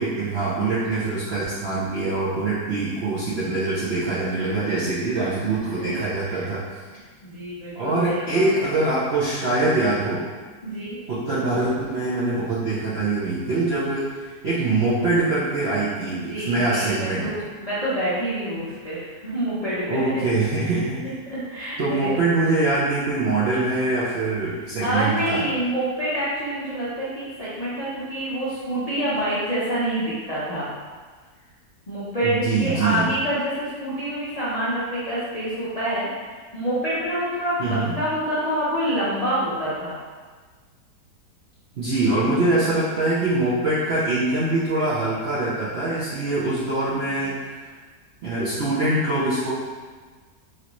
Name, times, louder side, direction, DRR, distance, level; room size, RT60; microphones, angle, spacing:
voice 1, 0.0-6.6 7.8-10.2 11.1-17.3 19.9-21.0 21.8-25.4 32.2-33.0 37.6-37.9 41.8-47.6 48.2-49.5, right 2 dB, 70° right, -9 dB, 0.6 m, -23 dB
voice 2, 4.3-4.7 5.2-5.3 5.8-6.0 6.3-6.5 7.2-8.7 10.6-11.0 16.1-20.3 20.6-22.2 24.8-30.7 31.9-36.1 36.5-37.6 37.9-40.0 47.0-47.2, right 1 dB, 70° left, -11 dB, 0.3 m, -27 dB
3.1 x 2.5 x 2.9 m, 1.4 s
omnidirectional pair, 1.8 m